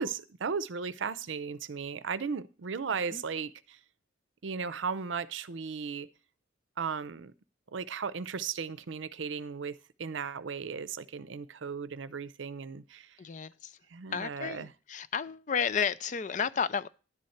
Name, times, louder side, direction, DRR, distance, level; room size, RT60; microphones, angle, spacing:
voice 1, 0.0-3.8 4.4-6.1 6.8-7.3 7.7-13.1 13.9-14.7, right 5 dB, 80° right, 0.6 m, -36 dB
voice 2, 13.2-13.8 14.1-16.9, left 6 dB, 40° left, 0.4 m, -32 dB
11.0 x 4.3 x 7.7 m
head